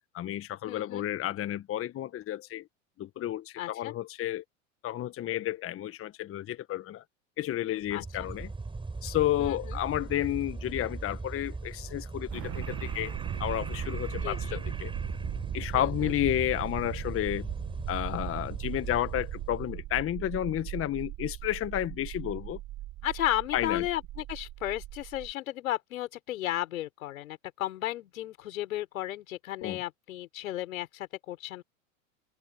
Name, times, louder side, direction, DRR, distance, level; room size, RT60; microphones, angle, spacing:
voice 1, 0.1-2.6 3.0-4.4 4.8-7.0 7.4-8.5 9.0-13.1 13.4-14.9 15.5-17.5 17.9-22.6 23.5-23.8 29.6-29.8, left 13 dB, 30° left, 1.4 m, -31 dB
voice 2, 0.7-1.1 3.6-3.9 7.9-8.3 9.4-9.8 14.2-14.6 15.7-16.1 23.0-31.6, left 14 dB, 75° left, 5.4 m, -34 dB
sound 1, 7.8-19.8, right 3 dB, 10° right, 7.8 m, -38 dB
sound 2, 12.3-25.3, right 16 dB, 40° right, 1.7 m, -39 dB
open air
hypercardioid pair, 95°, 42 cm